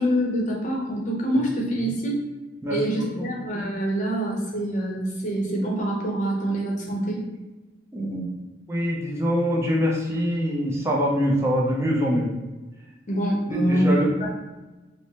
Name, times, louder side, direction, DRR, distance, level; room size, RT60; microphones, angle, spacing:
voice 1, 0.0-2.2 2.7-7.2 13.1-14.3, right 1 dB, 40° left, -1 dB, 0.8 m, -25 dB
voice 2, 2.6-3.2 7.9-8.3 8.7-12.3 13.5-14.1, equal, 15° right, -3 dB, 0.5 m, -24 dB
4.6 x 2.1 x 2.8 m, 1.2 s
head